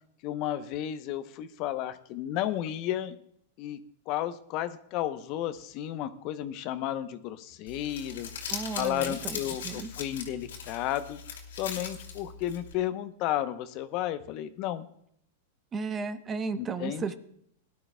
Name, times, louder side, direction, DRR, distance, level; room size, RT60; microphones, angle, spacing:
voice 1, 0.2-3.2 3.6-3.8 4.1-11.2 11.6-14.9 16.6-17.1, left 12 dB, 45° left, 12 dB, 0.8 m, -33 dB
Crumpling crinkling, 7.7-12.7, left 6 dB, 80° left, 2.5 m, -39 dB
voice 2, 8.5-9.4 9.6-9.9 15.7-17.1, right 5 dB, 25° right, 10 dB, 0.9 m, -34 dB
19.0 x 11.5 x 2.3 m, 0.69 s
hypercardioid pair, 115°, 0 cm